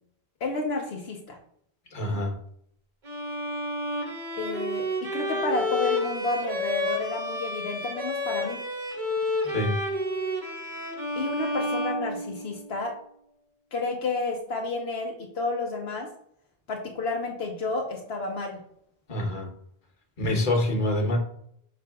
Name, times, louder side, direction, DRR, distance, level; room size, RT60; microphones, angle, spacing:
voice 1, 0.4-1.4 4.3-8.6 11.2-12.9 13.7-16.1 16.7-18.6, left 3 dB, 80° left, 0 dB, 1.2 m, -31 dB
voice 2, 1.9-2.3 9.4-9.8 19.1-19.5 20.2-21.2, left 1 dB, 50° left, 1 dB, 1.4 m, -26 dB
Bowed string instrument, 3.0-12.8, left 1 dB, 50° right, 1.3 m, -30 dB
7.5 x 6.0 x 2.4 m, 0.69 s
omnidirectional pair, 1.1 m